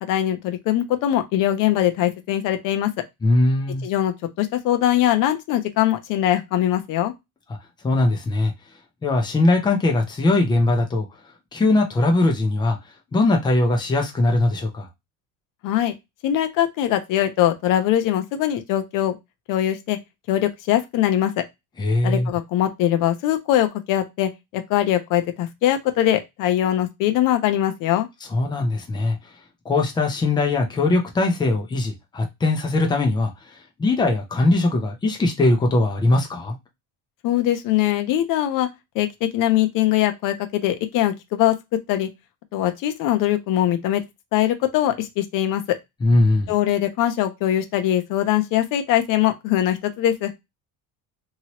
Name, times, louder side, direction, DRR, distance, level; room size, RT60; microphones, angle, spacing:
voice 1, 0.0-2.9 3.8-7.1 15.6-15.9 16.2-19.2 19.5-20.0 20.3-21.4 22.0-28.1 37.2-38.7 38.9-41.5 41.9-42.1 42.5-44.0 44.3-45.6 46.5-50.3, left 12 dB, 60° left, 0.6 m, -22 dB
voice 2, 3.2-3.9 7.8-8.5 9.0-11.1 11.5-12.8 13.1-14.9 21.8-22.3 28.3-29.2 29.6-33.3 33.8-36.6 46.0-46.5, left 2 dB, 10° left, 0.5 m, -20 dB
2.9 x 2.8 x 2.9 m
cardioid pair, 175°, 36 cm